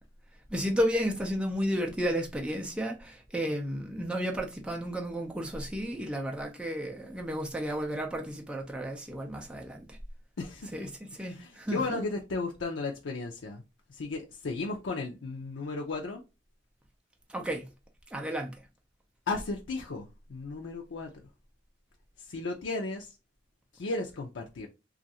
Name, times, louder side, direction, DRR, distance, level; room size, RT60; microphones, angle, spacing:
voice 1, 0.5-10.0 10.7-12.0 17.3-17.6 18.1-18.6, equal, 5° right, 0.5 m, -32 dB
voice 2, 10.4-10.7 11.3-13.6 14.0-16.2 19.3-21.1 22.3-23.1 23.8-24.7, left 3 dB, 80° left, 0.5 m, -34 dB
3.1 x 2.4 x 2.7 m
head